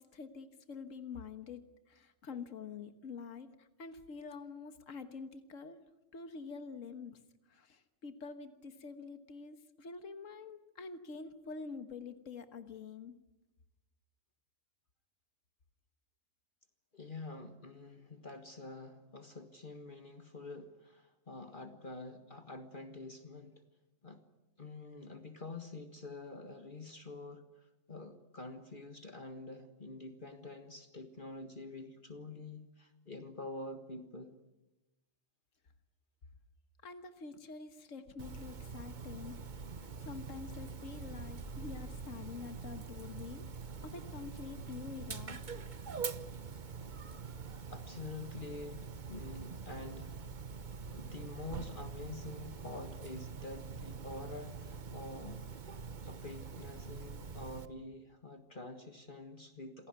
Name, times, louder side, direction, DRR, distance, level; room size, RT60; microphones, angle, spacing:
voice 1, 0.0-5.8 6.1-7.2 7.5-13.1 36.8-39.4 40.0-45.4, left 5 dB, 80° left, 9 dB, 1.7 m, -47 dB
voice 2, 16.9-23.6 24.0-24.2 24.6-34.3 47.6-50.3 50.9-55.5 56.0-59.9, left 2 dB, 40° left, 7 dB, 1.7 m, -47 dB
Dog, 38.2-57.6, right 5 dB, 40° right, 1.1 m, -44 dB
27.5 x 17.5 x 9.5 m, 1.0 s
omnidirectional pair, 1.3 m